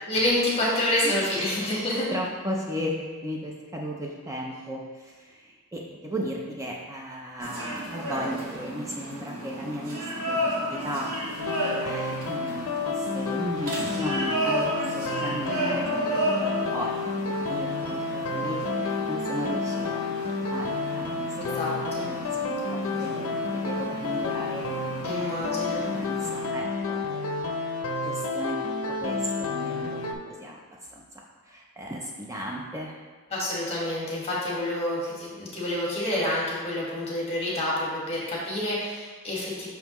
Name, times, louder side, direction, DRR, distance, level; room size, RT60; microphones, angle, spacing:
voice 1, 0.1-2.1 15.4-15.8 21.4-22.1 25.0-25.8 33.3-39.7, left 1 dB, 30° left, -5 dB, 1.6 m, -28 dB
voice 2, 1.0-1.6 2.1-11.1 11.7-20.1 20.5-22.6 22.9-24.6 25.0-25.3 25.9-27.6 28.0-28.6 29.0-30.6 30.9-31.0 31.5-33.0, equal, 15° right, -1 dB, 0.5 m, -36 dB
sound 1, 7.4-26.5, right 1 dB, 75° right, 1.1 m, -34 dB
sound 2, 11.4-30.1, left 3 dB, 65° left, 0.6 m, -30 dB
5.8 x 5.4 x 3.0 m, 1.4 s
head